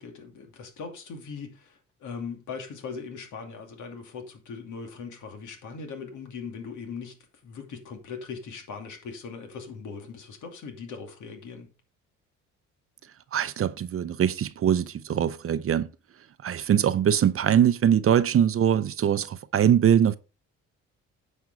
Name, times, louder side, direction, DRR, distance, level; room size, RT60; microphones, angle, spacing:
voice 1, 0.0-7.2 7.4-11.7, left 5 dB, 75° left, 2.6 m, -40 dB
voice 2, 13.3-15.9 16.4-20.2, right 9 dB, 50° right, 0.7 m, -22 dB
9.6 x 5.4 x 4.8 m
cardioid pair, 90°, 30 cm